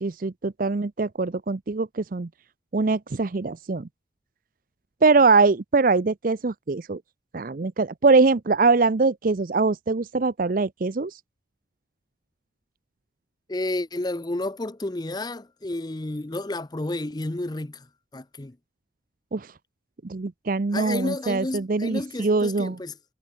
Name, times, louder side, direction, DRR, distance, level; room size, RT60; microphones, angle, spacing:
voice 1, 0.0-2.3 2.7-3.9 5.0-7.0 7.3-11.2 19.3-19.5 20.0-22.8, right 3 dB, 45° right, 0.6 m, -22 dB
voice 2, 13.5-17.9 18.1-18.6 20.7-23.0, left 2 dB, 20° left, 0.6 m, -31 dB
head